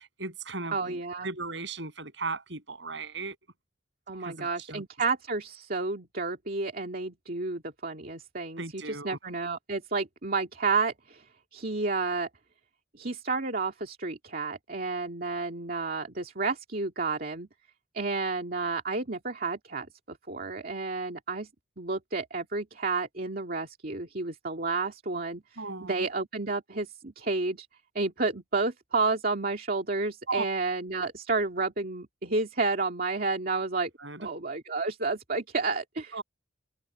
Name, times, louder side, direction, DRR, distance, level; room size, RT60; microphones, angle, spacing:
voice 1, 0.0-3.4 4.2-4.8 8.6-9.2 25.6-26.1 30.3-30.4 34.0-34.2 36.1-36.2, right 3 dB, 65° right, 7.4 m, -36 dB
voice 2, 0.7-1.3 4.1-11.2 11.5-12.3 12.9-17.5 17.9-21.5 21.8-27.7 27.9-33.9 34.2-36.2, right 3 dB, 50° right, 2.3 m, -31 dB
head